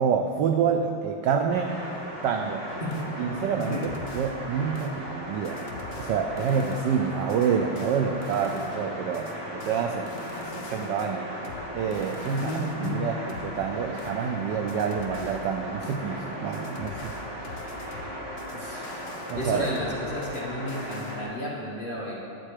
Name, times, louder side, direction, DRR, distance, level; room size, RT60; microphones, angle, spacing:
voice 1, 0.0-1.7 2.2-2.7 3.2-5.6 6.0-10.1 10.5-11.3 11.7-17.1 19.3-19.7, right 6 dB, 80° right, 5 dB, 1.0 m, -27 dB
sound 1, 1.5-21.2, equal, 35° right, 2.0 m, -37 dB
sound 2, 2.7-21.2, left 3 dB, 60° left, 1.4 m, -44 dB
voice 2, 12.3-13.0 18.5-19.0 19.3-22.1, left 1 dB, 30° left, -6 dB, 1.2 m, -32 dB
10.5 x 7.7 x 4.9 m, 2.6 s
omnidirectional pair, 2.4 m